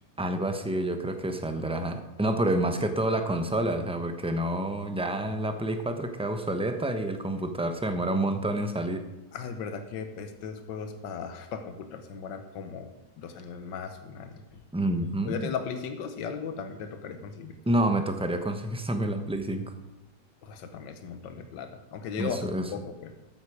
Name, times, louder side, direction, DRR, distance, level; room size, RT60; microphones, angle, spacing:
voice 1, 0.2-9.0 14.7-15.5 17.7-19.7 22.2-22.7, right 1 dB, 5° right, 7 dB, 0.6 m, -28 dB
voice 2, 9.3-12.9 13.2-14.3 15.2-17.5 20.4-23.1, left 6 dB, 85° left, 8 dB, 1.7 m, -37 dB
13.5 x 9.3 x 4.8 m, 1.0 s
omnidirectional pair, 1.9 m